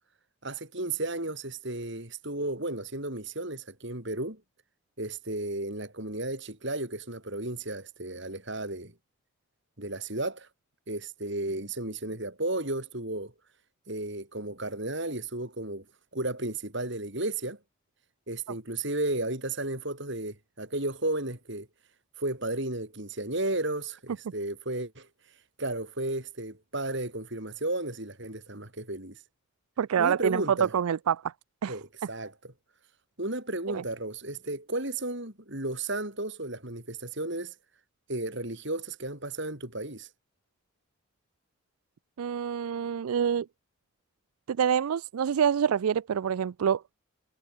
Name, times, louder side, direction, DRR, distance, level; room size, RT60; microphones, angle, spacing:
voice 1, 0.4-4.4 5.0-8.9 9.8-10.5 10.9-13.3 13.9-15.8 16.1-17.6 18.3-21.7 22.2-25.1 25.6-29.2 30.0-30.7 31.7-32.3 33.2-37.5 38.1-40.1, right 2 dB, 55° right, 5.0 m, -33 dB
voice 2, 29.8-31.3 31.6-31.8 33.7-33.8 42.2-43.5 44.5-46.8, right 8 dB, 85° right, 0.4 m, -26 dB
head